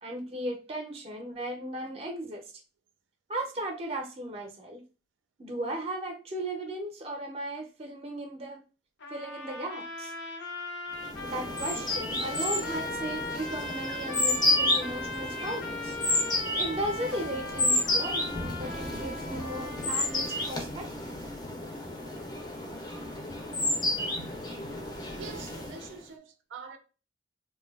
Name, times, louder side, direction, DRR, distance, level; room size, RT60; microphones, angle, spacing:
voice 1, 0.0-2.4 3.3-4.8 5.4-8.6 9.1-10.1 11.2-16.0 16.6-20.9, right 1 dB, 30° right, 0.5 m, -36 dB
sound 1, 9.0-20.6, left 2 dB, 75° left, 0.6 m, -39 dB
sound 2, 11.0-26.0, left 2 dB, 20° left, 0.4 m, -31 dB
voice 2, 24.2-24.6 25.2-26.8, right 6 dB, 85° right, 0.4 m, -45 dB
2.5 x 2.2 x 2.2 m
head